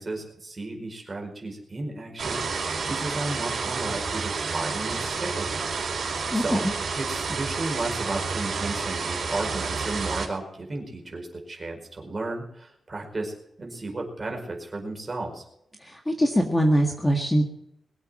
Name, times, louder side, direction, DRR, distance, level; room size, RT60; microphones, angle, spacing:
voice 1, 0.0-5.7 6.0-6.7 6.9-15.5, right 2 dB, 25° right, 1 dB, 4.9 m, -34 dB
sound 1, 2.2-10.3, right 4 dB, 65° right, 4.5 m, -30 dB
voice 2, 6.3-6.6 15.8-17.4, equal, 10° left, 2 dB, 1.8 m, -22 dB
22.5 x 8.2 x 7.7 m, 0.78 s
wide cardioid pair, 160°, 0 cm